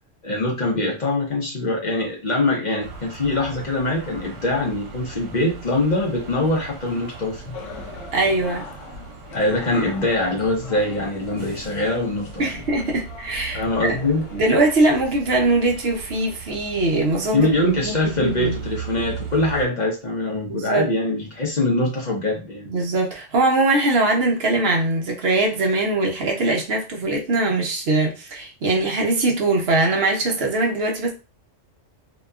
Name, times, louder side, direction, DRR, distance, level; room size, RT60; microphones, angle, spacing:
voice 1, 0.2-7.6 9.3-12.5 13.5-14.2 17.3-22.7, left 2 dB, 45° left, 0.6 m, -23 dB
sound 1, 2.8-19.7, right 5 dB, 90° right, 1.1 m, -39 dB
sound 2, 7.5-15.1, left 3 dB, 80° left, 1.0 m, -41 dB
voice 2, 8.1-8.7 12.4-14.0 14.3-18.6 20.5-20.9 22.7-31.1, right 2 dB, 60° right, 0.8 m, -21 dB
2.7 x 2.3 x 2.2 m
omnidirectional pair, 1.3 m